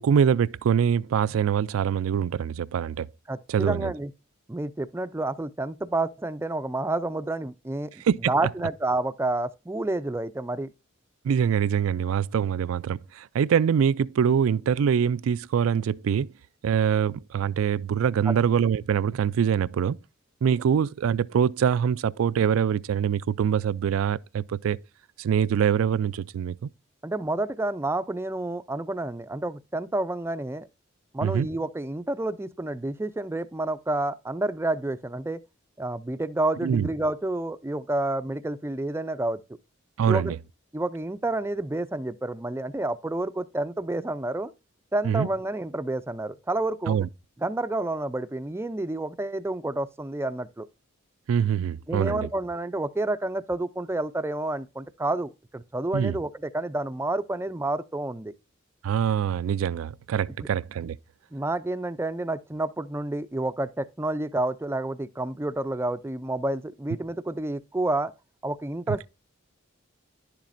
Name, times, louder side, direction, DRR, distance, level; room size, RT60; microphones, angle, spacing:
voice 1, 0.0-3.1 3.5-3.9 8.0-8.3 11.2-16.3 16.6-20.0 20.4-24.8 25.2-26.7 31.2-31.5 36.6-36.9 40.0-40.4 45.0-45.3 46.9-47.1 51.3-52.3 55.9-56.2 58.8-61.0 68.9-69.0, right 8 dB, 85° right, 0.3 m, -24 dB
voice 2, 3.3-4.1 4.5-7.9 8.3-10.7 18.3-18.4 27.0-30.7 31.1-35.4 35.8-39.4 40.1-40.3 40.7-44.5 44.9-47.0 47.4-50.7 51.9-58.3 61.3-68.1 68.4-69.1, right 2 dB, 10° right, 0.4 m, -29 dB
11.0 x 7.3 x 2.5 m
head